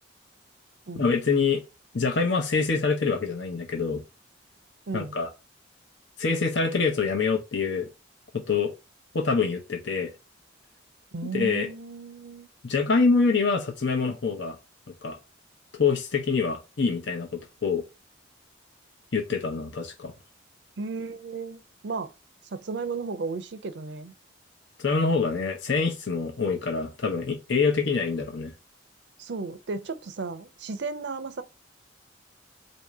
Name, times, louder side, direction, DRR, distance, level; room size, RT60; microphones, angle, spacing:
voice 1, 0.9-1.6 1.9-4.0 4.9-5.3 6.2-7.9 8.3-8.7 9.1-10.1 11.3-11.7 12.6-14.6 15.0-15.2 15.7-17.8 19.1-20.1 24.8-28.5, left 4 dB, 70° left, 0.8 m, -25 dB
voice 2, 11.1-12.5 20.8-22.1 22.5-24.1 29.2-31.4, right 4 dB, 60° right, 0.5 m, -34 dB
4.1 x 2.7 x 4.6 m
head